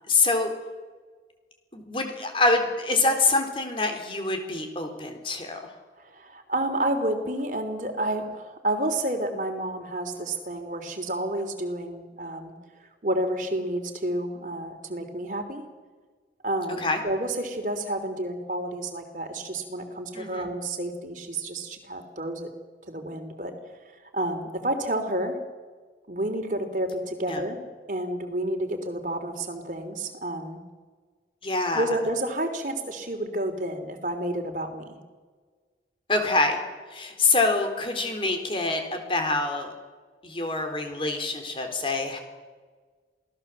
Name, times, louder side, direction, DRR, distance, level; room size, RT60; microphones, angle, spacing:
voice 1, 0.1-0.5 1.7-5.7 16.8-17.0 20.1-20.5 27.3-27.4 31.4-31.9 36.1-36.6 36.9-39.7 40.2-42.2, left 3 dB, 30° left, 5 dB, 3.8 m, -25 dB
voice 2, 6.0-12.5 13.0-15.6 16.4-22.5 22.9-23.6 24.1-25.4 26.1-27.6 27.9-30.6 31.7-35.0, right 1 dB, 45° right, 5 dB, 3.4 m, -30 dB
27.5 x 18.5 x 7.6 m, 1.4 s
head